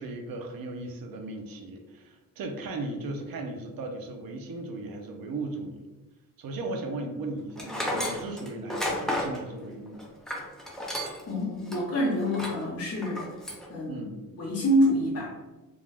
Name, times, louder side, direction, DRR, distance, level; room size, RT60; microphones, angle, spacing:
voice 1, 0.0-5.9 6.4-10.0 13.9-14.2, right 2 dB, 75° right, 4 dB, 0.5 m, -37 dB
Tools, 7.6-11.3 11.7-11.8 12.3-12.6 13.0-13.7, left 1 dB, ahead, 0.3 m, -32 dB
voice 2, 11.3-13.3 13.7-14.1 14.4-15.3, equal, 45° left, -5 dB, 0.6 m, -26 dB
2.3 x 2.1 x 3.2 m, 1.1 s
wide cardioid pair, 135°, 34 cm